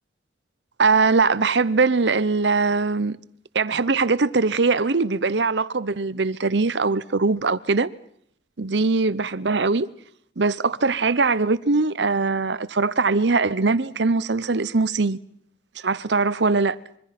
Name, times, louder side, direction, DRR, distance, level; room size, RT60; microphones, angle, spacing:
voice 1, 0.8-3.2 3.5-7.9 8.6-9.9 10.4-15.2 15.8-16.8, right 4 dB, 65° right, 0.9 m, -21 dB
26.0 x 23.5 x 6.0 m
head